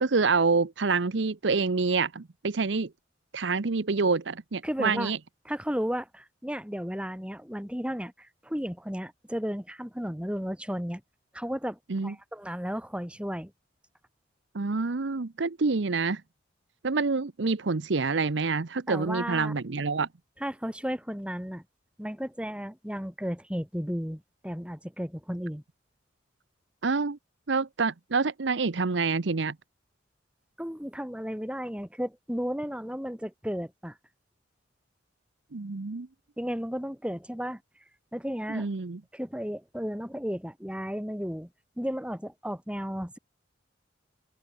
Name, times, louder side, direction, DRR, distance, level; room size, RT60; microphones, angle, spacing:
voice 1, 0.0-2.9 3.3-5.2 11.9-12.1 14.5-16.2 16.8-20.1 26.8-27.2 27.5-29.6 35.5-36.1 38.5-39.0, right 4 dB, 70° right, 0.8 m, -27 dB
voice 2, 4.6-5.1 5.4-11.0 11.3-13.5 18.9-19.6 20.4-21.6 22.0-25.6 30.6-34.0 36.4-37.6 38.1-38.7 39.1-41.5 41.8-43.2, equal, 5° right, 4.9 m, -34 dB
open air
head